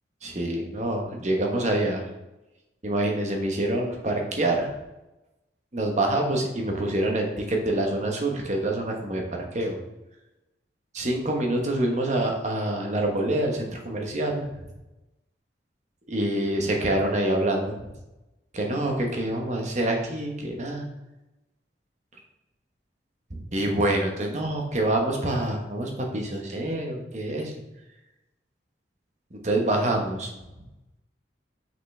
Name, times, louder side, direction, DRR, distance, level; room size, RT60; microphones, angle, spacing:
voice 1, 0.2-2.1 2.8-4.7 5.7-9.8 10.9-14.7 16.1-17.7 18.5-20.9 23.3-27.5 29.3-30.3, right 1 dB, 40° right, 1 dB, 1.1 m, -26 dB
6.0 x 5.7 x 3.3 m, 0.99 s
head